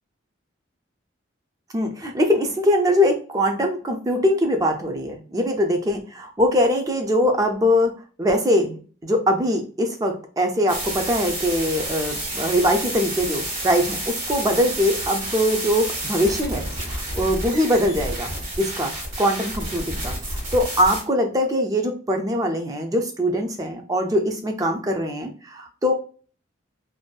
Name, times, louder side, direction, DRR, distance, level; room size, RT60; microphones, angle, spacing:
voice 1, 1.7-7.9 8.2-18.3 18.6-20.1 20.5-25.9, equal, 20° right, 5 dB, 0.3 m, -22 dB
sound 1, 10.7-21.0, right 1 dB, 45° right, 1.2 m, -30 dB
2.5 x 2.1 x 2.3 m, 0.41 s
head